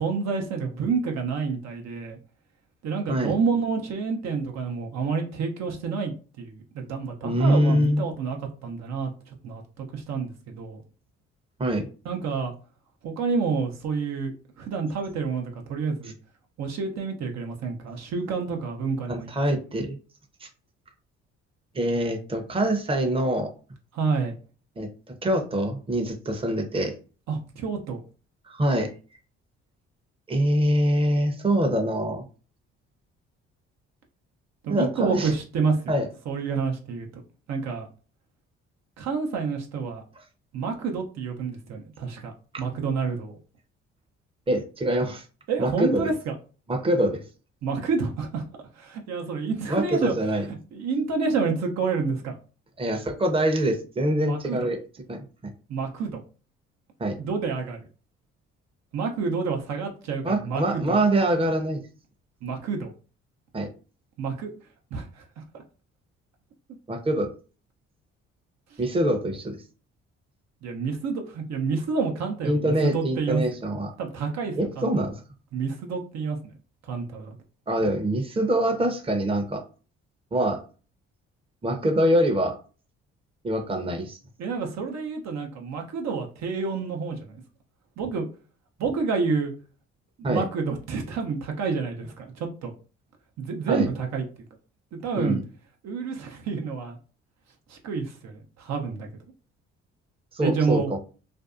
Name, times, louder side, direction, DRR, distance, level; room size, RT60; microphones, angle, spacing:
voice 1, 0.0-2.2 2.8-8.4 8.6-10.8 12.0-12.5 13.0-14.3 14.6-16.1 16.6-19.3 23.9-24.3 27.3-28.0 34.6-35.8 36.3-37.2 37.5-37.9 39.0-40.0 40.5-43.4 45.5-46.3 47.6-48.4 48.8-50.1 50.7-52.4 54.3-54.6 55.7-56.2 57.1-57.8 58.9-61.0 62.4-62.9 64.2-64.5 64.9-65.2 68.7-68.8 70.6-73.4 74.0-74.9 75.5-76.5 76.9-77.4 84.4-87.4 88.0-88.3 88.8-89.5 90.2-92.7 93.4-94.2 95.0-95.4 95.8-97.0 97.7-99.1 100.4-100.9, right 5 dB, 65° right, 3 dB, 0.6 m, -29 dB
voice 2, 7.2-8.0 11.6-11.9 19.1-20.0 20.4-20.5 21.7-23.5 24.8-24.9 25.2-26.9 28.5-28.9 30.3-32.2 34.7-35.3 35.9-36.1 44.5-45.2 45.6-46.1 46.7-47.2 49.7-50.4 52.8-54.8 55.1-55.5 57.0-57.2 60.2-61.8 63.5-63.7 66.9-67.3 68.8-69.6 72.4-73.9 74.6-75.2 77.7-79.6 80.3-80.6 81.6-82.6 83.4-84.2 90.2-90.4 93.7-93.9 95.2-95.4 100.3-101.0, right 1 dB, 20° right, 4 dB, 0.7 m, -24 dB
2.6 x 2.2 x 2.4 m, 0.36 s
supercardioid pair, 60°, 29 cm